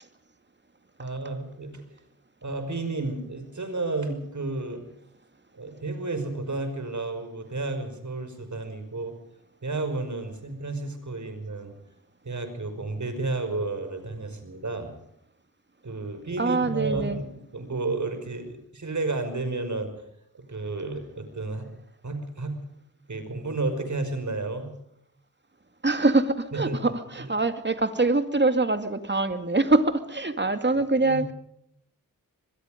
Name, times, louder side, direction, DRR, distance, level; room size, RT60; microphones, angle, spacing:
voice 1, 1.0-1.8 2.4-4.8 5.5-9.1 9.6-11.7 12.2-14.9 15.8-19.9 20.3-21.7 22.0-22.6 23.1-24.7 26.5-26.9 27.2-27.3 31.0-31.3, right 3 dB, 55° right, 8 dB, 5.7 m, -32 dB
voice 2, 16.4-17.2 25.8-31.3, right 2 dB, 30° right, 9 dB, 2.3 m, -24 dB
25.5 x 21.5 x 5.2 m, 0.74 s
wide cardioid pair, 70°, 35 cm